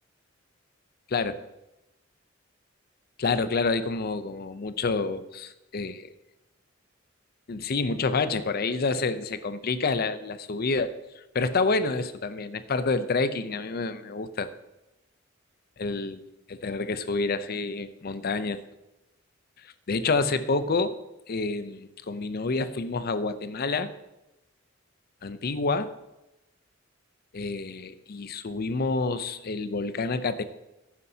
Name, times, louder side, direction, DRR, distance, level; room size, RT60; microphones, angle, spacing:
voice 1, 1.1-1.4 3.2-6.1 7.5-10.9 11.3-14.5 15.8-16.2 16.5-18.6 19.6-20.9 21.3-23.9 25.2-25.9 27.3-30.4, left 3 dB, 50° left, 12 dB, 0.6 m, -28 dB
11.0 x 9.7 x 2.8 m, 0.97 s
head